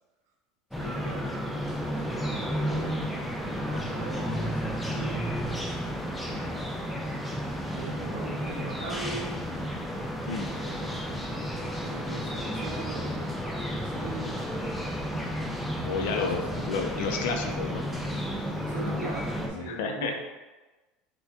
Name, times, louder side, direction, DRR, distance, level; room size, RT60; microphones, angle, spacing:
sound 1, 0.7-19.5, equal, 5° left, 0.5 m, -32 dB
voice 1, 0.7-5.4 6.2-6.5 7.7-9.4 10.5-14.8 16.0-16.6 18.7-20.2, right 3 dB, 90° right, 0 dB, 0.6 m, -41 dB
voice 2, 6.3-6.6 10.3-10.5 15.8-17.8 19.5-20.2, left 4 dB, 80° left, 4 dB, 0.5 m, -31 dB
4.3 x 2.2 x 2.8 m, 1.2 s
supercardioid pair, 110°, 0 cm